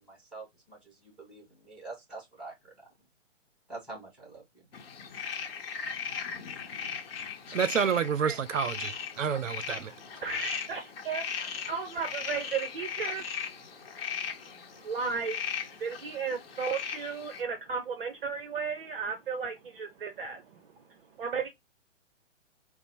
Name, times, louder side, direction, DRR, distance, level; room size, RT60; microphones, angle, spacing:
voice 1, 0.0-2.9 3.7-4.4, right 3 dB, ahead, 2.1 m, -46 dB
sound 1, 4.7-17.4, left 7 dB, 50° left, 0.8 m, -38 dB
voice 2, 7.5-9.9, right 7 dB, 90° right, 0.5 m, -29 dB
voice 3, 10.2-13.3 14.3-21.5, right 5 dB, 50° right, 0.7 m, -35 dB
4.0 x 2.0 x 4.3 m
figure-of-eight pair, 130°, 37 cm